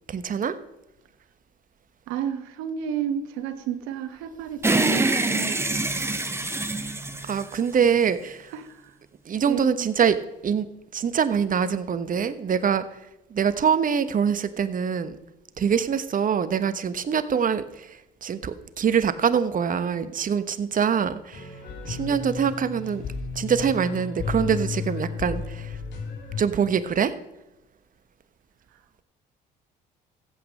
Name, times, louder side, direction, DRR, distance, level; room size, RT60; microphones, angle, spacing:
voice 1, 0.1-0.5 7.3-8.5 9.3-10.2 10.4-10.7 10.9-12.8 13.3-15.1 15.6-17.9 18.2-21.5 21.9-23.0 23.3-25.7 26.4-27.1, right 7 dB, 45° right, 11 dB, 1.1 m, -24 dB
voice 2, 2.1-5.8 8.5-8.7 9.5-9.9, right 9 dB, 85° right, 9 dB, 1.3 m, -31 dB
sound 1, 4.6-8.1, right 2 dB, 15° right, 1.3 m, -25 dB
sound 2, 21.3-26.4, left 5 dB, 65° left, 3.5 m, -33 dB
15.0 x 8.4 x 6.5 m, 0.95 s
supercardioid pair, 70°, 20 cm